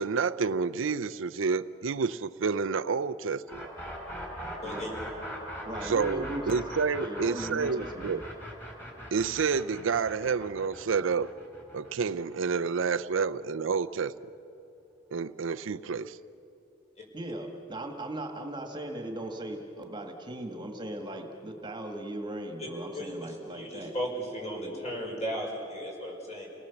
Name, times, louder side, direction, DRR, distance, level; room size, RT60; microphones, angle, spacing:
voice 1, 0.0-3.7 5.8-8.2 9.1-11.3 11.7-14.1 15.1-16.2, right 5 dB, 75° right, 12 dB, 0.5 m, -29 dB
sound 1, 3.5-13.3, equal, 10° left, 4.7 m, -41 dB
voice 2, 4.6-5.0 17.0-17.1 22.6-26.5, equal, 35° left, -1 dB, 5.8 m, -36 dB
voice 3, 5.6-6.6 7.0-8.2 17.1-23.9, right 1 dB, 25° right, 4 dB, 1.7 m, -38 dB
29.0 x 19.0 x 7.1 m, 2.9 s
head